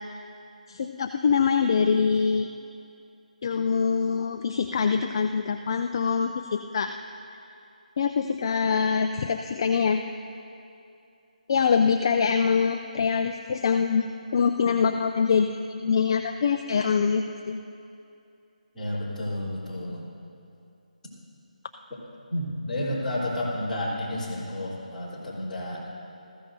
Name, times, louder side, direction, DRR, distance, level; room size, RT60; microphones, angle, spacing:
voice 1, 0.7-2.5 3.4-6.9 8.0-10.0 11.5-14.1 14.3-17.6, left 6 dB, 35° left, 6 dB, 0.4 m, -24 dB
voice 2, 18.7-20.1 22.3-25.8, left 1 dB, 5° left, -14 dB, 3.3 m, -31 dB
19.0 x 14.5 x 2.7 m, 2.6 s
figure-of-eight pair, 165°, 4 cm